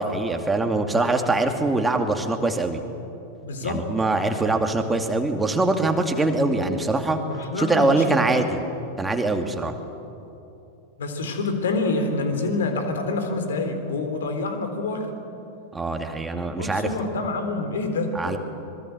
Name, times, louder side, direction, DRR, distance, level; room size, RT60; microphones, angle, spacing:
voice 1, 0.0-2.8 3.6-7.2 7.6-8.6 9.0-9.7 15.7-16.9 18.1-18.4, right 2 dB, 10° right, 5 dB, 2.4 m, -23 dB
voice 2, 3.4-3.9 7.3-8.2 11.0-15.1 16.5-18.4, left 3 dB, 65° left, 7 dB, 3.7 m, -27 dB
26.0 x 22.0 x 8.0 m, 2.8 s
figure-of-eight pair, 90°, 0 cm